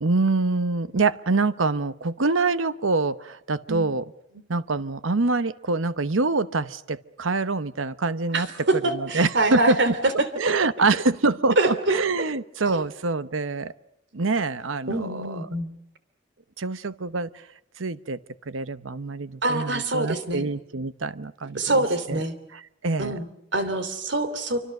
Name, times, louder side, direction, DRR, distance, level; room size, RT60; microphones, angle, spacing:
voice 1, 0.0-4.0 4.5-8.5 8.9-9.9 10.4-13.7 14.1-15.5 16.6-17.3 17.8-18.2 18.5-22.2 22.5-23.2, right 3 dB, 90° right, 14 dB, 0.9 m, -25 dB
voice 2, 8.3-10.3 11.6-12.0 12.7-12.8 14.9-15.7 19.4-20.4 21.5-22.3 23.0-23.3 23.5-24.6, right 2 dB, 65° right, 11 dB, 2.9 m, -25 dB
27.0 x 25.0 x 6.6 m, 0.78 s
head